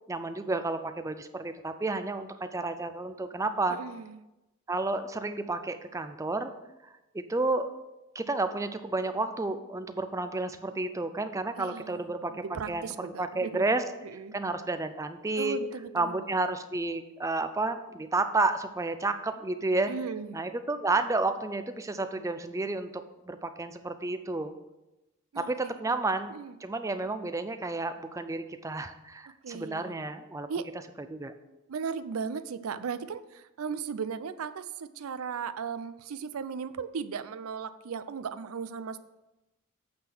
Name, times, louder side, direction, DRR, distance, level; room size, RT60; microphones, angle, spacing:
voice 1, 0.1-3.8 4.7-6.5 7.1-7.7 8.1-13.8 14.3-15.6 15.9-19.9 20.3-22.9 23.3-24.5 25.4-26.3 26.6-30.5 31.1-31.3, right 3 dB, 15° right, 9 dB, 0.4 m, -31 dB
voice 2, 3.7-4.2 11.6-13.6 14.0-14.4 15.4-16.3 19.9-20.4 25.3-25.8 26.3-26.5 29.4-30.0 30.5-30.7 31.7-39.0, right 6 dB, 85° right, 14 dB, 0.5 m, -37 dB
8.7 x 3.8 x 6.1 m, 0.98 s
head